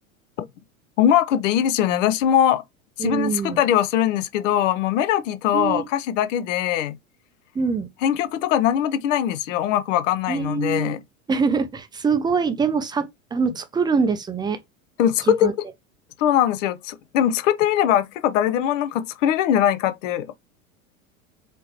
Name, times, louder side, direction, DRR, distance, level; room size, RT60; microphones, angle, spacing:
voice 1, 1.0-2.6 3.0-7.0 8.0-11.0 15.0-15.7 16.2-20.3, left 10 dB, 60° left, 0.7 m, -21 dB
voice 2, 3.0-3.6 5.5-5.8 7.5-7.9 10.3-11.0 11.3-14.6 15.3-15.5, right 5 dB, 10° right, 0.5 m, -24 dB
4.3 x 2.9 x 2.8 m
hypercardioid pair, 90°, 43 cm